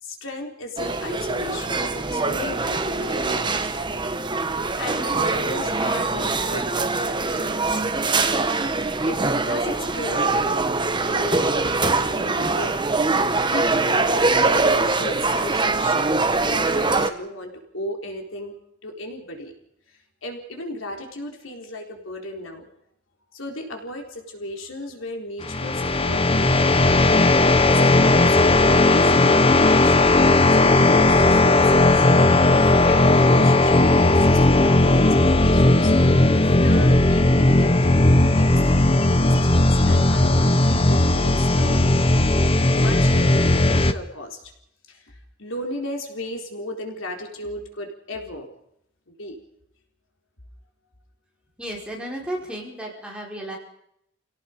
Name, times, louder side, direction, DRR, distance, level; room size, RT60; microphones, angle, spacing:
voice 1, 0.0-4.0 4.8-7.8 9.0-10.6 11.1-12.9 13.2-18.5 18.8-19.5 20.2-22.7 23.3-27.0 27.6-30.1 30.5-32.1 32.4-38.0 38.3-41.9 42.7-44.4 44.9-48.5 49.1-49.4, left 1 dB, 80° left, 2 dB, 4.1 m, -35 dB
sound 1, 0.8-17.1, right 3 dB, 25° right, 1.1 m, -23 dB
sound 2, 25.4-43.9, left 2 dB, 30° left, 0.9 m, -17 dB
voice 2, 51.6-53.6, right 1 dB, 5° right, -2 dB, 5.1 m, -33 dB
28.5 x 17.5 x 5.2 m, 0.75 s
head